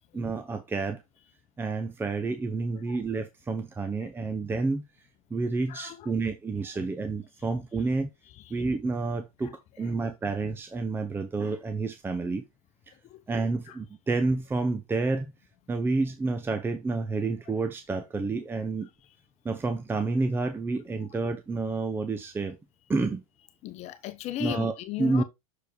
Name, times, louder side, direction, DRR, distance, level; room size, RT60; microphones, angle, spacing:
voice 1, 0.1-1.0 1.6-4.8 5.3-8.1 8.5-12.4 13.3-15.3 15.7-18.9 19.4-22.6 22.9-23.2 24.4-24.7 25.0-25.2, right 3 dB, 10° right, 0.8 m, -29 dB
voice 2, 5.7-6.1 8.4-8.6 12.9-13.2 13.7-13.8 23.6-25.2, left 13 dB, 40° left, 1.1 m, -37 dB
6.7 x 4.6 x 3.6 m
hypercardioid pair, 115°, 18 cm